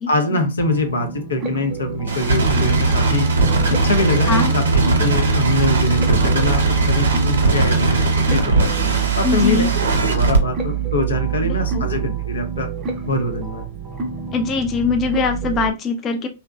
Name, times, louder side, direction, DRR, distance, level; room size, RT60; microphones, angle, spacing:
voice 1, 0.1-3.3 3.7-4.6 5.0-8.7 9.2-9.7 10.1-12.7 13.1-13.6, left 2 dB, 85° left, 6 dB, 0.5 m, -23 dB
sound 1, 0.6-15.7, right 7 dB, 25° right, 0.5 m, -27 dB
sound 2, 2.1-10.4, right 3 dB, 80° right, 0.7 m, -18 dB
voice 2, 9.2-9.7 11.4-11.8 14.3-16.3, left 4 dB, 30° left, 5 dB, 0.4 m, -22 dB
2.6 x 2.1 x 2.2 m, 0.27 s
hypercardioid pair, 115°, 0 cm